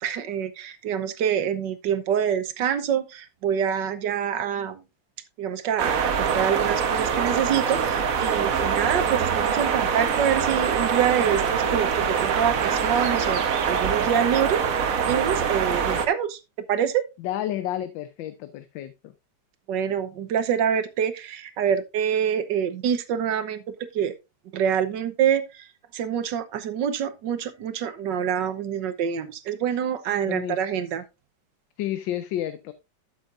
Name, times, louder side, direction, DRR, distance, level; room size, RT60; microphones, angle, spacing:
voice 1, 0.0-4.8 5.4-16.4 16.7-17.0 19.7-23.6 23.9-24.1 24.5-25.7 25.9-31.0, right 8 dB, 70° right, 1.5 m, -26 dB
sound 1, 5.8-16.1, right 6 dB, 55° right, 1.2 m, -24 dB
voice 2, 17.2-18.9 30.2-30.6 31.8-32.7, left 12 dB, 80° left, 1.4 m, -30 dB
12.5 x 7.0 x 2.5 m
omnidirectional pair, 2.1 m